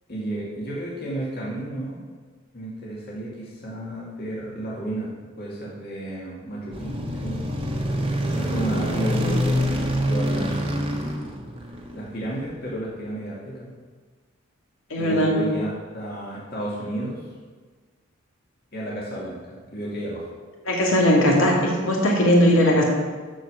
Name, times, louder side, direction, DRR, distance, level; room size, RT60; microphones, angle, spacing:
voice 1, 0.1-2.0 2.5-7.6 8.3-11.2 11.9-13.7 15.0-17.2 18.7-20.3, right 1 dB, 45° left, -6 dB, 2.2 m, -32 dB
sound 1, 6.7-12.2, equal, 25° right, 1.3 m, -26 dB
voice 2, 14.9-15.4 20.6-22.8, equal, 70° left, -2 dB, 2.5 m, -19 dB
13.0 x 4.9 x 6.3 m, 1.4 s
head